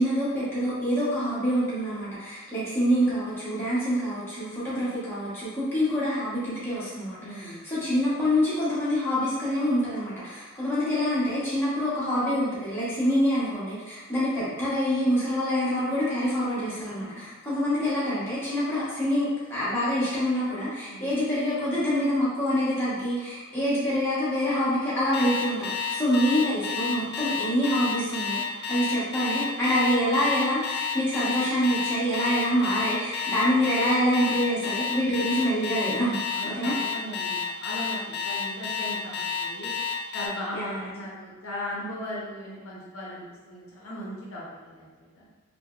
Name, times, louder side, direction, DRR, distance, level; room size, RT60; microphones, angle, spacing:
voice 1, 0.0-36.2 36.4-36.7 40.5-40.9, equal, 10° left, -12 dB, 0.9 m, -26 dB
voice 2, 7.2-7.7 17.1-17.2 20.9-21.1 36.3-39.7 40.1-45.2, left 1 dB, 70° left, -6 dB, 0.7 m, -38 dB
Alarm, 25.1-40.3, left 6 dB, 50° left, 0.3 m, -30 dB
3.2 x 2.2 x 2.3 m, 1.3 s
head